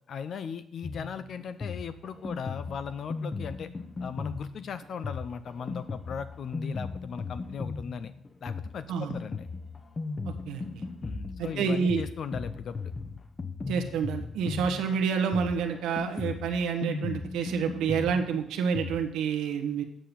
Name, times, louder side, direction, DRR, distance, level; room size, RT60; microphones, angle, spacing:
voice 1, 0.1-3.7 4.0-8.1 8.4-9.5 11.0-12.8, left 7 dB, 60° left, 11 dB, 0.5 m, -38 dB
Drum kit, 0.8-19.0, left 4 dB, 35° left, 1.0 m, -37 dB
voice 2, 10.2-10.8 11.4-12.0 13.7-19.8, right 6 dB, 90° right, 4 dB, 1.2 m, -29 dB
8.9 x 5.7 x 6.9 m, 0.72 s
cardioid pair, 90°, 0 cm